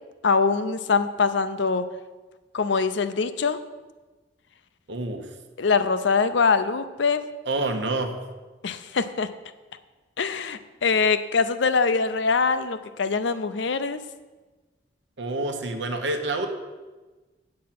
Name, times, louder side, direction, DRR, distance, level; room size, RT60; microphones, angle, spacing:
voice 1, 0.2-1.9 2.5-3.6 5.6-7.3 8.6-9.3 10.2-14.0, left 5 dB, 75° left, 12 dB, 0.6 m, -23 dB
voice 2, 4.9-5.3 7.5-8.2 15.2-16.5, right 2 dB, 70° right, 5 dB, 1.0 m, -27 dB
8.7 x 7.5 x 5.9 m, 1.2 s
head